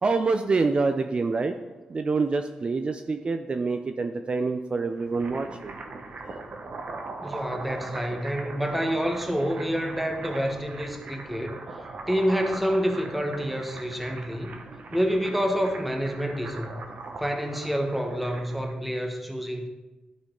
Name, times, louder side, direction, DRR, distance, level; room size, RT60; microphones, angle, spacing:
voice 1, 0.0-1.5 1.9-5.7, right 4 dB, 40° right, 6 dB, 0.4 m, -26 dB
sound 1, 4.9-18.8, right 3 dB, 60° right, 1.0 m, -40 dB
voice 2, 7.2-14.6 14.9-16.8 17.2-19.7, equal, 5° right, 3 dB, 1.2 m, -28 dB
11.5 x 4.2 x 3.8 m, 1.2 s
cardioid pair, 65°, 3 cm